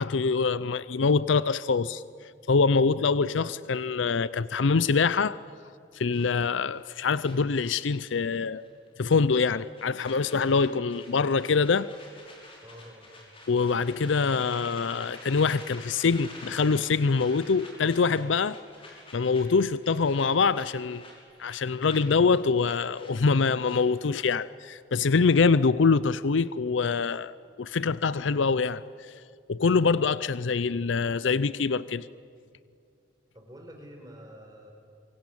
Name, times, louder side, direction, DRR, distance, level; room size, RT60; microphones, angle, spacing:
voice 1, 0.0-2.0 2.5-5.4 5.9-8.6 9.0-11.9 13.5-18.6 19.1-21.0 21.4-28.8 29.5-32.1, left 4 dB, 80° left, 0.5 m, -24 dB
sound 1, 6.1-8.4 8.6-8.9 9.2-24.1, left 2 dB, 30° left, 6.3 m, -49 dB
voice 2, 12.6-13.1 33.3-34.7, equal, 20° right, 4.6 m, -47 dB
27.0 x 24.5 x 8.7 m
head